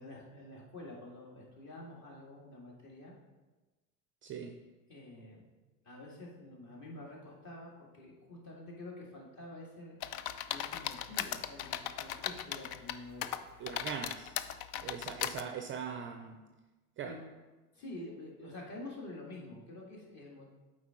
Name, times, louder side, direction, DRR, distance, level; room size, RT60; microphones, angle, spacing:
voice 1, 0.0-3.1 4.9-5.5 5.8-10.0 10.5-13.5 17.0-17.3 17.7-20.5, left 2 dB, 40° left, -3 dB, 2.2 m, -48 dB
voice 2, 4.2-4.6 13.6-14.3 14.8-16.4 17.0-17.2, right 7 dB, 30° right, 5 dB, 0.4 m, -41 dB
sound 1, 10.0-12.9 13.2-15.4, left 11 dB, 65° left, 0.5 m, -37 dB
7.8 x 4.9 x 3.7 m, 1.2 s
hypercardioid pair, 90°, 45 cm